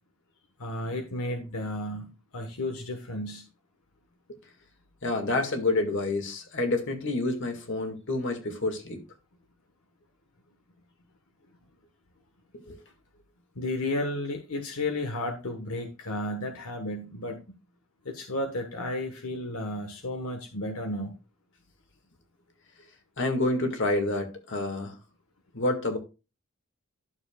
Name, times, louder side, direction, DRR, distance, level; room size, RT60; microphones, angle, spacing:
voice 1, 0.6-3.4 13.5-17.4 18.0-21.2, left 1 dB, 85° left, 1.3 m, -33 dB
voice 2, 5.0-9.0 12.7-12.8 23.2-24.9 25.5-26.0, left 2 dB, 60° left, 1.9 m, -28 dB
12.0 x 6.9 x 2.3 m
head